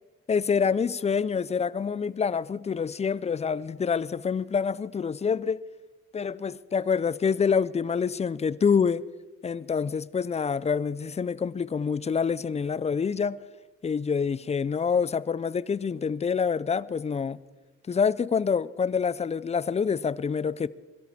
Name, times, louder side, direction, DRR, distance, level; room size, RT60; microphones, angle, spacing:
voice 1, 0.3-5.6 6.1-9.0 9.4-13.4 13.8-17.4 17.9-20.7, left 6 dB, 20° left, 0.4 m, -26 dB
22.0 x 13.0 x 4.3 m
cardioid pair, 90°, 30 cm